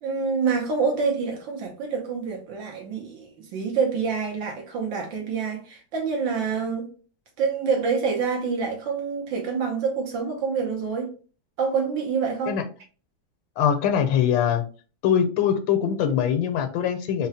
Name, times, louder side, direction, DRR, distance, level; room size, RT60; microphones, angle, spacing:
voice 1, 0.0-6.9 7.4-11.1 11.6-12.6, right 5 dB, 75° right, 1.5 m, -27 dB
voice 2, 13.6-14.6 15.0-17.3, left 8 dB, 80° left, 1.4 m, -22 dB
3.8 x 2.1 x 4.0 m
omnidirectional pair, 2.2 m